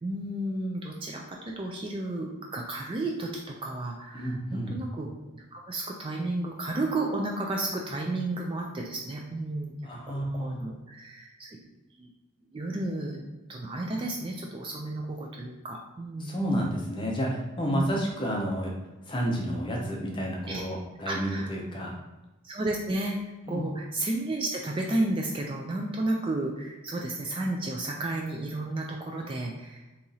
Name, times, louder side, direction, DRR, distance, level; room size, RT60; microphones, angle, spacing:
voice 1, 0.0-5.1 5.3-9.7 10.1-11.6 12.0-12.1 12.5-13.2 13.5-16.3 17.7-17.8 20.5-20.6 21.1-21.5 22.4-23.2 23.5-29.8, right 2 dB, 25° right, 0 dB, 0.3 m, -32 dB
voice 2, 4.1-4.8 9.8-10.6 16.2-18.7 19.1-22.0 23.5-23.6, equal, 20° left, -1 dB, 0.6 m, -30 dB
2.9 x 2.7 x 3.9 m, 1.1 s
head